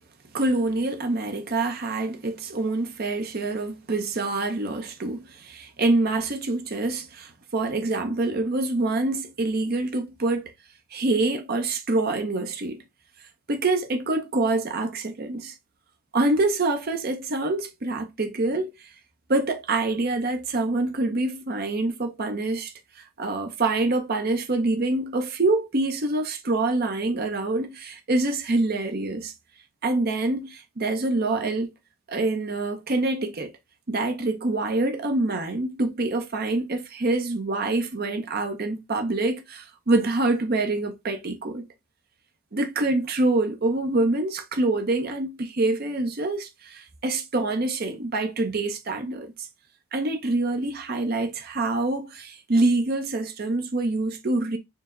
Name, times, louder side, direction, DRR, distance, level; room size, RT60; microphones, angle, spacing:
voice 1, 0.3-10.5 10.9-12.8 13.5-15.5 16.1-18.7 19.3-29.3 29.8-31.7 32.1-33.5 33.9-41.6 42.5-49.5 49.9-54.6, right 2 dB, 45° right, 0.6 m, -26 dB
4.5 x 2.1 x 3.6 m
head